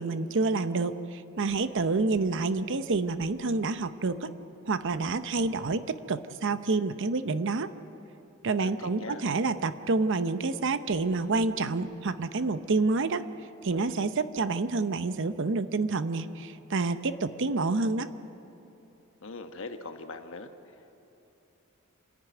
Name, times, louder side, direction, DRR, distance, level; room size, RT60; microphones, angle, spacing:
voice 1, 0.0-4.3 4.7-7.7 8.4-13.2 13.6-18.1, right 3 dB, 60° right, 12 dB, 0.7 m, -28 dB
voice 2, 8.6-9.2 19.2-20.5, left 3 dB, 65° left, 7 dB, 1.2 m, -41 dB
27.0 x 10.5 x 9.3 m, 3.0 s
head